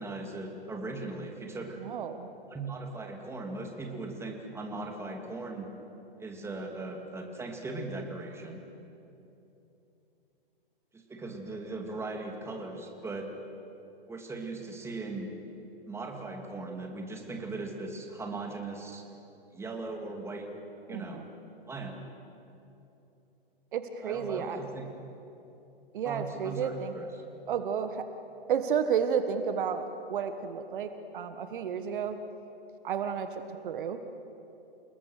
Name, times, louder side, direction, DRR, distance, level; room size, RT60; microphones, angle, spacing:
voice 1, 0.0-1.8 2.5-5.7 6.2-8.6 10.9-13.3 14.1-15.3 15.9-19.1 19.5-20.5 20.9-21.2 21.7-22.0 24.0-24.9 26.0-27.2, right 3 dB, 10° right, 2 dB, 2.7 m, -39 dB
voice 2, 1.8-2.3 20.9-21.2 23.7-24.6 25.9-26.9 27.5-28.1 28.5-32.2 32.8-34.0, right 7 dB, 60° right, 9 dB, 1.5 m, -32 dB
29.0 x 19.5 x 6.5 m, 2.9 s
hypercardioid pair, 125°, 30 cm